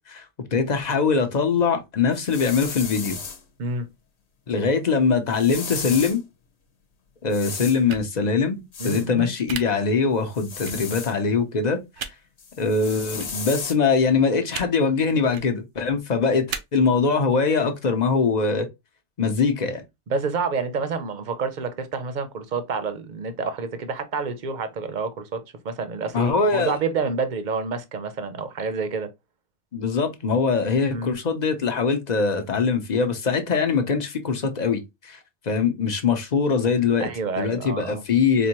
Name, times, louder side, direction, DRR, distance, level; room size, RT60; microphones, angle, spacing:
voice 1, 0.5-3.2 4.5-6.2 7.2-11.8 12.6-18.7 19.2-19.8 26.1-26.8 29.7-35.2 35.5-37.1 37.4-38.5, left 5 dB, 40° left, 0.8 m, -22 dB
sound 1, 2.1-3.4 5.3-6.2 7.3-7.8 8.7-9.1 10.3-11.1 12.4-13.7, left 5 dB, 65° left, 1.1 m, -34 dB
sound 2, 7.9-8.1 9.5-9.6 10.7-10.8 12.0-12.1 13.2-13.3 14.5-14.7 15.2-15.5 16.5-16.6, right 7 dB, 80° right, 1.0 m, -32 dB
voice 2, 8.8-9.3 20.1-29.1 30.9-31.1 37.0-38.0, right 4 dB, 45° right, 0.7 m, -28 dB
4.4 x 2.6 x 2.9 m
omnidirectional pair, 1.2 m